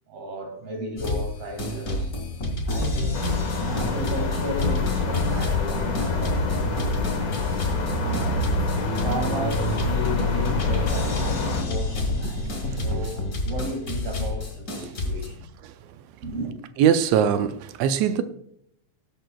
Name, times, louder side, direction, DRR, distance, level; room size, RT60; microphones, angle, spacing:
voice 1, 0.1-2.1 2.7-7.4 7.9-8.3 9.0-12.5 12.8-15.5 16.2-16.6, right 1 dB, 50° right, 2.9 m, -34 dB
sound 1, 1.0-1.3 1.6-15.3, left 1 dB, 30° left, 2.1 m, -28 dB
sound 2, 3.1-11.6, left 4 dB, 75° left, 0.8 m, -28 dB
voice 2, 14.8-15.2 16.8-18.2, right 8 dB, 80° right, 1.5 m, -22 dB
19.0 x 7.6 x 2.3 m
omnidirectional pair, 3.6 m